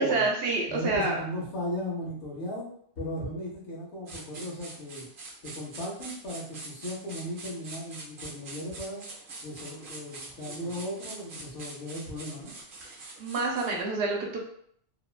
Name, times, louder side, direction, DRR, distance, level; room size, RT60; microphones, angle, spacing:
voice 1, 0.0-1.2 13.2-14.4, right 3 dB, 85° right, 0 dB, 1.0 m, -27 dB
voice 2, 0.7-2.7 3.0-5.1 5.4-9.0 9.4-12.5, left 1 dB, 85° left, -3 dB, 1.2 m, -36 dB
sound 1, 4.1-13.8, right 2 dB, 55° right, 0.8 m, -44 dB
2.9 x 2.1 x 2.3 m, 0.65 s
omnidirectional pair, 1.1 m